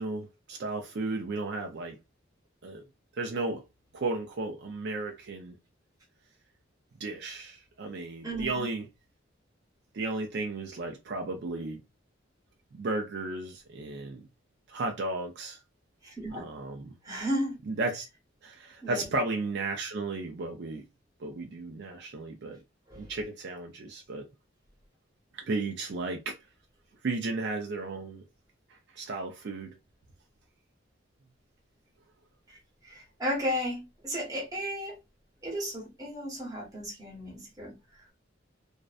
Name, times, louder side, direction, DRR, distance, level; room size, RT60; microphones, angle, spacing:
voice 1, 0.0-2.0 2.6-2.8 3.1-3.6 3.9-5.6 7.0-8.9 9.9-11.8 12.7-14.3 14.7-15.6 16.3-16.9 17.7-18.1 18.4-20.9 21.2-22.6 23.0-24.3 25.3-26.4 27.0-28.2 28.7-29.7, right 3 dB, 60° right, 0.4 m, -34 dB
voice 2, 8.2-8.7 16.0-16.4 17.0-17.6 18.8-19.1 22.9-23.1 32.5-35.0 35.4-38.1, equal, 20° right, 1.0 m, -34 dB
2.5 x 2.1 x 2.4 m
head